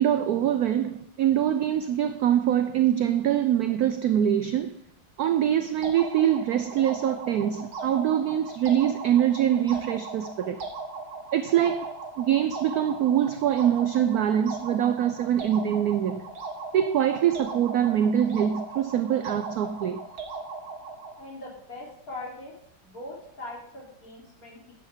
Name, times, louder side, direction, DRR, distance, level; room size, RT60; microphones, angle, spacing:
voice 1, 0.0-4.8 5.2-10.6 11.3-16.3 16.7-20.0, right 10 dB, 75° right, 0.8 m, -24 dB
sound 1, 5.8-21.2, right 3 dB, 55° right, 2.1 m, -38 dB
voice 2, 21.2-22.5 22.8-24.7, left 2 dB, 45° left, 3.7 m, -41 dB
11.0 x 9.7 x 3.6 m
omnidirectional pair, 2.2 m